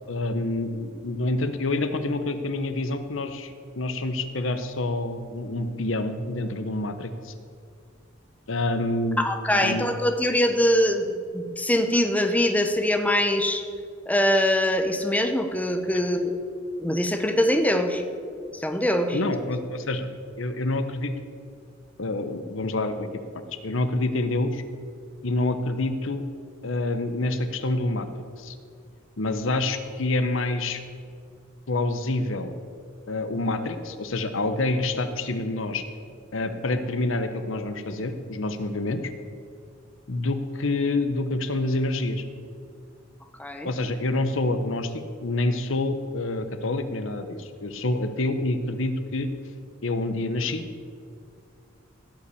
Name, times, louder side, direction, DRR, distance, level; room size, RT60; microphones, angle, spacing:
voice 1, 0.1-3.5 3.8-7.3 8.5-9.3 9.5-9.9 19.1-20.1 20.4-21.1 22.0-23.1 23.3-24.6 25.2-26.2 26.6-28.1 28.4-28.5 29.2-30.8 31.7-32.6 33.1-35.8 36.3-39.1 40.1-42.2 43.6-49.3 49.8-50.7, left 2 dB, 75° left, 9 dB, 0.9 m, -27 dB
voice 2, 9.2-13.6 14.1-16.4 16.8-18.0 18.5-19.2 43.4-43.7, left 1 dB, 10° left, 6 dB, 0.8 m, -23 dB
15.5 x 5.7 x 8.4 m, 2.3 s
head